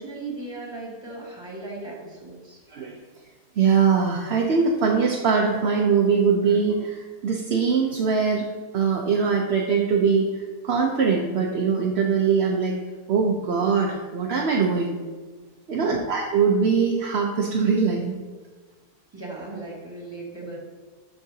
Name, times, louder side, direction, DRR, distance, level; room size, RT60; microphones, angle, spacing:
voice 1, 0.0-2.6 15.7-16.0 19.1-20.6, right 2 dB, 15° right, -4 dB, 1.9 m, -37 dB
voice 2, 3.6-8.5 8.7-12.8 13.1-15.0 15.7-18.2, right 5 dB, 55° right, 0 dB, 0.7 m, -22 dB
12.5 x 4.6 x 2.8 m, 1.4 s
omnidirectional pair, 1.7 m